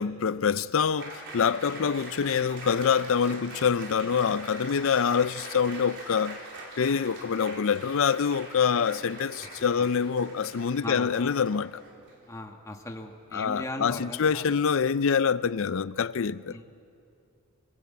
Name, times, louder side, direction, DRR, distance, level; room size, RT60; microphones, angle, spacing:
voice 1, 0.0-6.4 6.8-11.8 13.3-16.6, left 6 dB, 60° left, 0.5 m, -26 dB
Applause, 1.0-12.3, right 2 dB, 55° right, 3.7 m, -43 dB
voice 2, 10.8-11.3 12.3-14.4 16.5-16.6, left 1 dB, 15° left, 1.5 m, -38 dB
26.0 x 18.5 x 8.4 m
head